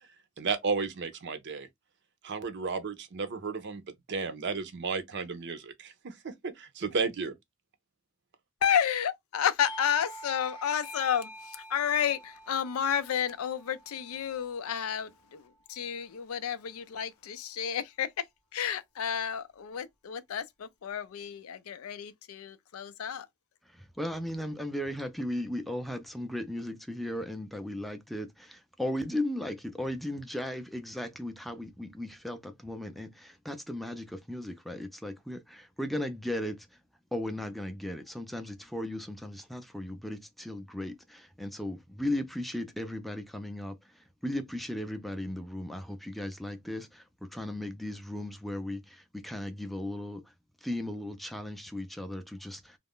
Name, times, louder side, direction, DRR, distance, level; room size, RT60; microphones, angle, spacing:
voice 1, 0.4-1.7 2.2-3.8 4.1-7.3, right 4 dB, 55° right, 0.6 m, -33 dB
voice 2, 8.6-11.3 11.7-15.4 15.7-18.1 18.5-23.3, left 8 dB, 90° left, 0.4 m, -31 dB
Doorbell, 9.6-14.9, right 1 dB, 25° left, 0.8 m, -47 dB
voice 3, 24.0-36.6 37.1-43.8 44.2-50.2 50.6-52.8, left 1 dB, ahead, 0.4 m, -36 dB
2.4 x 2.0 x 3.5 m
head